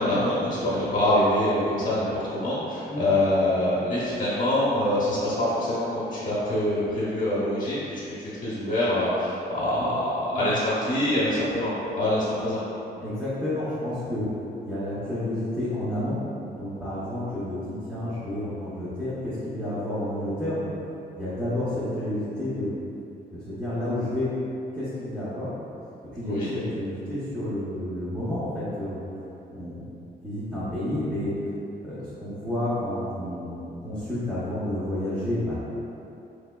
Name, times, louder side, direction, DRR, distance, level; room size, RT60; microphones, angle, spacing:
voice 1, 0.0-12.6 26.2-26.5, left 1 dB, 50° left, -9 dB, 0.9 m, -25 dB
voice 2, 13.0-14.3 14.6-16.2 16.5-20.7 21.2-22.7 23.3-24.3 24.7-25.5 26.1-29.0 29.5-29.9 30.2-31.3 31.8-35.6, left 1 dB, 5° right, -13 dB, 0.7 m, -30 dB
3.3 x 3.2 x 2.2 m, 2.8 s
cardioid pair, 130°, 18 cm